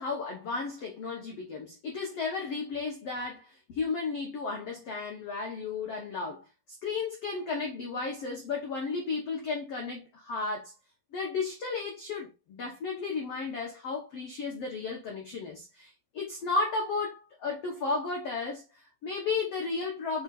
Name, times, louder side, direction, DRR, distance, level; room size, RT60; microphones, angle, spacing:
voice 1, 0.0-6.4 6.8-10.7 11.1-20.2, left 4 dB, 80° left, 1.4 m, -34 dB
5.9 x 4.0 x 4.1 m
omnidirectional pair, 4.8 m